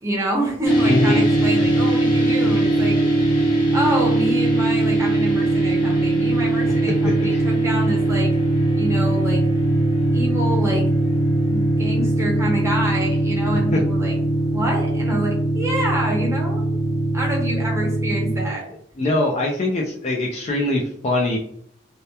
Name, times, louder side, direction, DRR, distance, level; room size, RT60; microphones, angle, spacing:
voice 1, 0.0-3.0 3.7-8.3 8.7-9.4 10.1-10.9 11.4-14.1 14.5-16.6 17.1-18.6, right 1 dB, 15° right, -3 dB, 0.7 m, -27 dB
sound 1, 0.6-18.5, right 1 dB, 65° left, 0.8 m, -20 dB
voice 2, 0.8-1.2 1.5-1.6 7.0-7.4 13.7-13.8 19.0-21.4, left 2 dB, 30° left, -1 dB, 0.3 m, -22 dB
2.8 x 2.1 x 2.2 m, 0.68 s
head